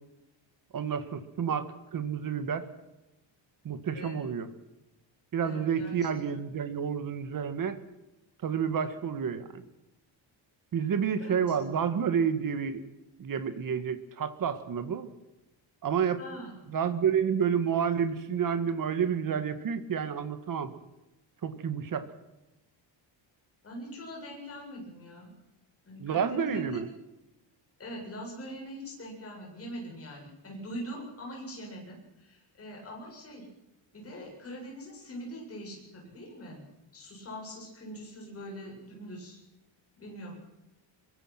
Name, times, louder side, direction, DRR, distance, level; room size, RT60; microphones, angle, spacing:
voice 1, 0.7-2.6 3.6-4.5 5.3-7.8 8.4-9.6 10.7-12.8 13.2-15.1 15.8-16.2 16.7-20.7 21.4-22.1 26.0-26.9, right 7 dB, 45° right, 10 dB, 1.9 m, -29 dB
voice 2, 5.4-6.2 11.2-11.6 16.2-16.6 23.6-25.3 25.9-26.8 27.8-33.5 33.9-36.6 36.9-39.4 40.0-40.3, equal, 30° left, -1 dB, 7.9 m, -42 dB
23.0 x 23.0 x 6.0 m, 0.96 s
cardioid pair, 180°, 48 cm